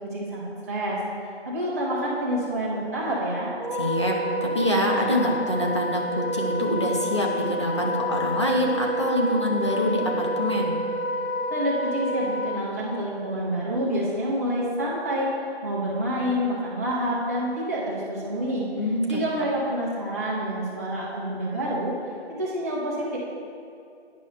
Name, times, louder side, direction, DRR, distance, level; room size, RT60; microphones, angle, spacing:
voice 1, 0.0-3.5 11.5-18.7 19.1-21.9 22.4-23.2, equal, 15° right, -7 dB, 0.7 m, -28 dB
Wind instrument woodwind instrument, 3.6-12.6, equal, 50° right, 0.9 m, -28 dB
voice 2, 3.7-10.8 18.8-19.2, equal, 25° left, -2 dB, 0.5 m, -25 dB
9.8 x 5.2 x 3.3 m, 2.4 s
figure-of-eight pair, 165°, 33 cm